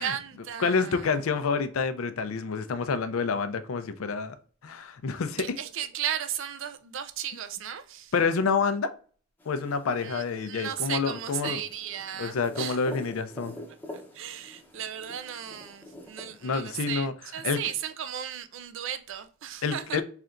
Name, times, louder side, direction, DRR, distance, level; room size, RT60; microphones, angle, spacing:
voice 1, 0.0-1.1 5.4-8.1 10.0-12.8 14.1-20.0, right 9 dB, 65° right, 0.4 m, -35 dB
voice 2, 0.6-4.4 4.6-5.4 8.1-8.9 9.5-11.6 12.2-13.6 16.4-17.1 17.4-17.6 19.6-20.0, left 5 dB, 90° left, 0.5 m, -28 dB
sound 1, 9.4-16.9, left 1 dB, 10° left, 0.7 m, -46 dB
3.9 x 3.3 x 2.5 m
head